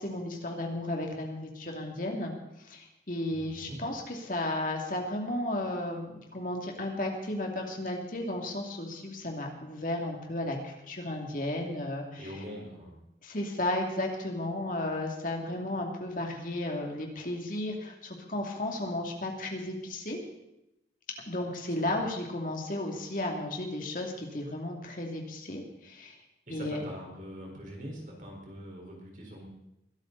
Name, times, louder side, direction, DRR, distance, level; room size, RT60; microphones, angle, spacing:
voice 1, 0.0-12.3 13.2-20.2 21.3-26.1 26.5-26.8, left 1 dB, 45° left, 1 dB, 2.6 m, -34 dB
voice 2, 3.3-3.8 12.1-12.9 21.9-22.0 26.5-29.4, equal, 45° right, -1 dB, 4.6 m, -43 dB
21.5 x 12.5 x 4.1 m, 0.87 s
head